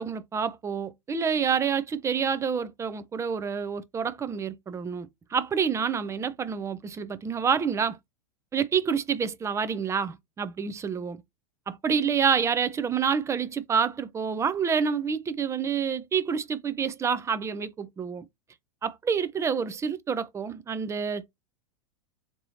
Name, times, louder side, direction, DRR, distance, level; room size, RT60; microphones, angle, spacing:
voice 1, 0.0-8.0 8.5-11.2 11.7-18.2 18.8-21.3, right 6 dB, 15° right, 0.4 m, -28 dB
3.3 x 2.7 x 2.9 m
hypercardioid pair, 100°, 18 cm